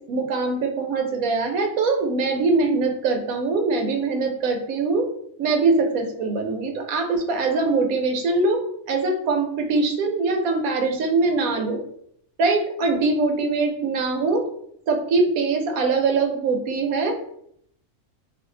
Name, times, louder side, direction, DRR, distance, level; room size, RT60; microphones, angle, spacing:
voice 1, 0.0-5.1 5.4-11.8 12.4-14.5 14.9-17.2, right 3 dB, 85° right, 4 dB, 1.1 m, -22 dB
2.6 x 2.4 x 3.7 m, 0.69 s
omnidirectional pair, 1.4 m